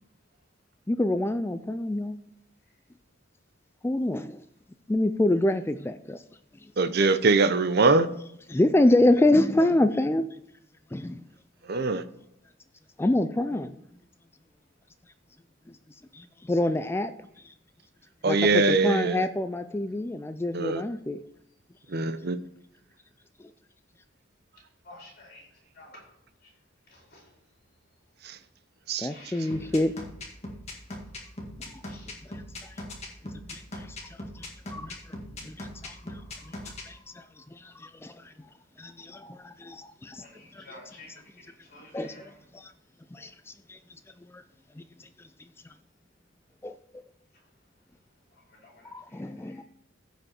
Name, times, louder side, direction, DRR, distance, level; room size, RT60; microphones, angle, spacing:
voice 1, 0.9-2.2 3.8-4.4 4.9-6.2 8.5-10.3 10.9-11.2 13.0-13.8 15.7-15.8 16.1-17.1 18.3-21.2 29.0-29.9 31.7-31.8 32.3-32.4 33.5-34.0 34.4-35.0 35.4-36.1 36.6-37.2 37.5-38.1 38.8-40.2 40.5-40.6 41.9-42.2 42.5-42.7 43.1-43.8 44.3-44.4 46.6-46.7 48.9-49.6, left 1 dB, 10° left, 0.3 m, -26 dB
voice 2, 6.8-8.1 11.7-12.0 18.2-19.2 20.5-20.8 21.9-22.4 28.2-28.4 28.9-29.1, right 3 dB, 50° right, 0.7 m, -22 dB
voice 3, 24.8-25.5 25.7-26.0 26.9-27.2 29.1-29.6 31.8-32.1 36.0-36.4 40.2-42.3 48.6-49.6, left 2 dB, 50° left, 4.5 m, -51 dB
sound 1, 29.5-36.8, left 1 dB, 30° left, 1.8 m, -39 dB
15.5 x 5.2 x 4.3 m
head